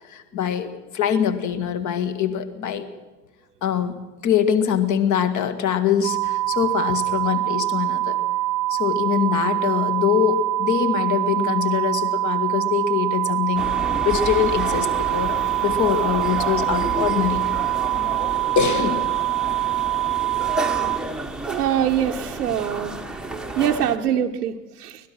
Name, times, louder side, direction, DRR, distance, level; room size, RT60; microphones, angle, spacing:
voice 1, 0.1-2.9 3.6-8.2 8.7-13.6 14.0-17.4 18.6-19.2, left 8 dB, 35° left, 9 dB, 1.9 m, -23 dB
sound 1, 6.0-21.0, right 16 dB, 35° right, 1.0 m, -24 dB
sound 2, 13.6-24.0, right 2 dB, ahead, 1.2 m, -31 dB
voice 2, 21.3-23.0 23.5-25.1, right 9 dB, 75° right, 0 dB, 1.0 m, -24 dB
24.0 x 18.0 x 6.3 m, 1.2 s
figure-of-eight pair, 75°, 48 cm